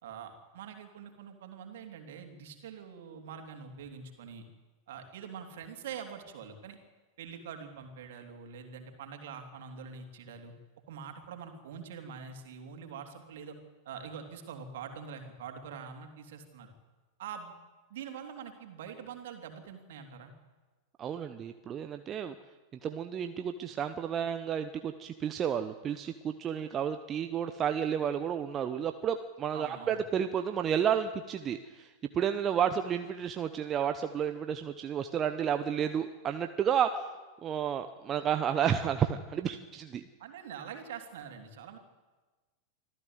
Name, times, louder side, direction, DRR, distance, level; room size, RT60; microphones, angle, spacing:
voice 1, 0.0-4.4 4.9-6.8 7.2-10.5 10.9-13.6 13.8-16.7 17.2-17.5 17.9-20.3 29.5-30.0 40.2-41.8, right 7 dB, 55° right, 4 dB, 3.3 m, -44 dB
voice 2, 21.0-22.3 22.8-37.1 37.4-40.0, right 8 dB, 25° right, 8 dB, 0.9 m, -31 dB
25.0 x 14.5 x 8.1 m, 1.3 s
figure-of-eight pair, 90°, 0 cm